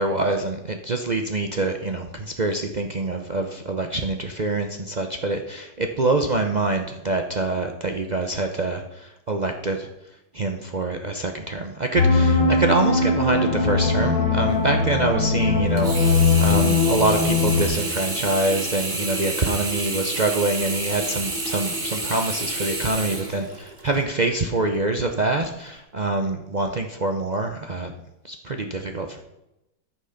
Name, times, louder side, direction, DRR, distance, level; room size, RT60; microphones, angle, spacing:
voice 1, 0.0-9.9 10.3-27.9 28.2-29.2, right 2 dB, 75° right, 4 dB, 0.4 m, -25 dB
sound 1, 12.0-17.7, left 3 dB, 75° left, 2.7 m, -20 dB
Sink (filling or washing), 15.8-24.0 24.5-24.6, right 2 dB, 25° right, 1.9 m, -29 dB
13.5 x 6.0 x 5.8 m, 0.89 s
omnidirectional pair, 2.0 m